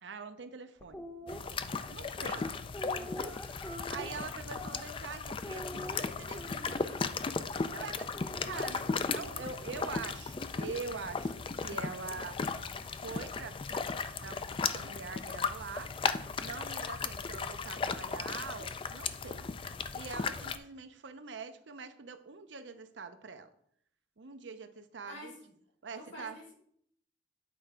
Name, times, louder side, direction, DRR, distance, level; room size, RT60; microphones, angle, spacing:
voice 1, 0.0-2.5 3.0-6.8 7.7-8.1 8.4-12.4 13.0-15.9 16.4-19.5 19.9-23.5 24.2-25.3 25.8-26.4, right 4 dB, 75° right, 9 dB, 0.7 m, -44 dB
sound 1, 0.8-1.4 2.2-5.1 5.4-6.9 8.1-9.5, equal, 10° left, 0.8 m, -45 dB
sound 2, 1.3-20.6, left 5 dB, 30° left, 0.4 m, -36 dB
voice 2, 2.2-2.5 8.5-8.8 25.1-25.4 25.9-26.5, left 1 dB, 85° left, -5 dB, 2.9 m, -47 dB
8.6 x 4.4 x 4.9 m, 0.67 s
head